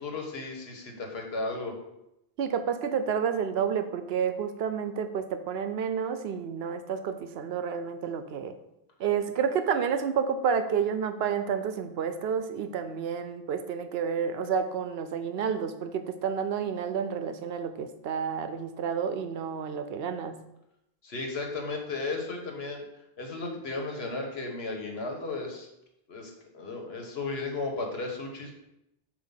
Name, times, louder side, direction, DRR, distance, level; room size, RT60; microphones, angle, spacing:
voice 1, 0.0-1.7 21.0-22.8 23.2-25.7 26.1-28.5, left 3 dB, 75° left, 2 dB, 1.4 m, -34 dB
voice 2, 2.4-8.5 9.0-20.3, right 7 dB, 75° right, 10 dB, 0.8 m, -30 dB
7.4 x 2.8 x 5.7 m, 0.86 s
omnidirectional pair, 1.1 m